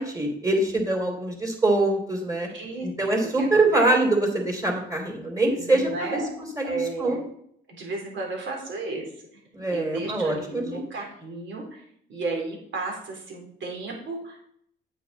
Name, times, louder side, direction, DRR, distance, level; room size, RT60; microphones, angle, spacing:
voice 1, 0.0-2.5 2.8-7.2 9.5-10.8, right 2 dB, 15° right, 1 dB, 3.3 m, -24 dB
voice 2, 2.5-2.9 3.4-3.9 5.6-6.3 6.6-7.3 7.7-9.4 9.7-14.4, right 3 dB, 70° right, 0 dB, 3.5 m, -33 dB
8.7 x 8.1 x 4.2 m, 0.69 s
cardioid pair, 90°, 20 cm